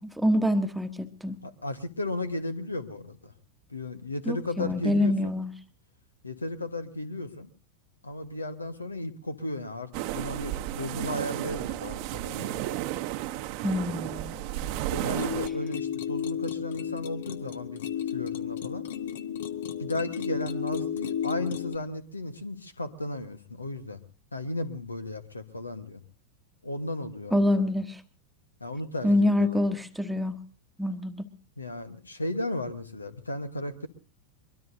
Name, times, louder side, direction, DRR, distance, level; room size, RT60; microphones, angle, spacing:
voice 1, 0.0-1.4 4.3-5.5 13.6-14.4 27.3-28.0 29.0-30.4 30.8-31.2, left 1 dB, 5° right, 8 dB, 1.2 m, -26 dB
voice 2, 1.4-3.3 3.7-5.3 6.2-7.5 8.0-12.7 14.9-17.8 18.1-18.9 19.8-24.0 24.3-26.0 26.6-27.7 28.6-29.6 31.6-33.9, left 1 dB, 80° left, 11 dB, 1.3 m, -35 dB
sound 1, 9.9-15.5, right 14 dB, 45° right, 1.0 m, -33 dB
sound 2, 15.2-21.8, left 9 dB, 60° left, 1.0 m, -33 dB
23.5 x 22.0 x 2.7 m, 0.37 s
figure-of-eight pair, 90°, 0 cm